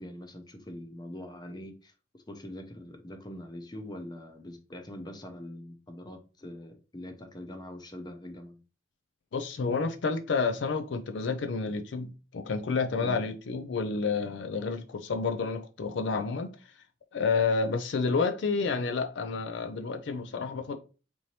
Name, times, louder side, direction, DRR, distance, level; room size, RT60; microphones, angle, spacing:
voice 1, 0.0-8.6 13.0-13.2, left 1 dB, 25° left, 0.6 m, -43 dB
voice 2, 9.3-16.6 17.1-20.8, left 4 dB, 70° left, 0.4 m, -30 dB
4.3 x 2.7 x 3.1 m
head